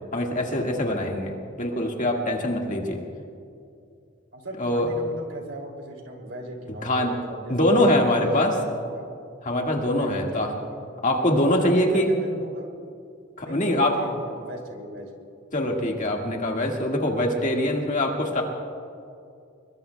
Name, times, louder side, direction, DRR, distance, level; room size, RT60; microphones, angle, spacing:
voice 1, 0.1-3.0 4.6-4.9 6.8-7.1 7.5-8.5 9.4-10.5 11.0-12.1 13.4-13.9 15.5-18.4, left 1 dB, 40° left, 1 dB, 1.8 m, -23 dB
voice 2, 4.3-7.9 8.2-9.1 9.9-10.8 11.6-12.7 13.5-15.1 17.6-17.7, right 1 dB, 80° right, 2 dB, 2.7 m, -37 dB
22.5 x 22.0 x 2.3 m, 2.4 s
head